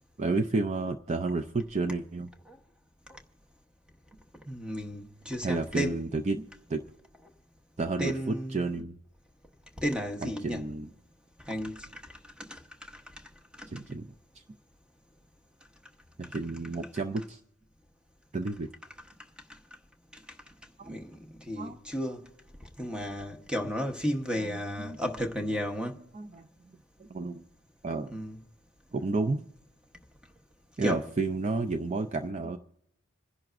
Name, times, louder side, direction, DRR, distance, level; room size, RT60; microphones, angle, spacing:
voice 1, 0.2-2.3 5.4-6.8 7.8-9.0 10.2-10.9 13.7-14.1 16.2-17.4 18.3-18.7 20.8-21.0 21.6-21.8 24.3-25.0 26.1-26.5 27.0-27.4 27.8-28.1 28.9-29.5 30.8-32.6, right 3 dB, 30° right, 0.4 m, -31 dB
voice 2, 4.5-5.9 8.0-8.7 9.8-10.6 11.5-11.9 12.4-12.6 13.6-13.7 20.8-22.2 22.8-26.0 28.1-28.4 30.8-31.0, equal, 5° right, 1.0 m, -33 dB
27.0 x 10.5 x 2.5 m
head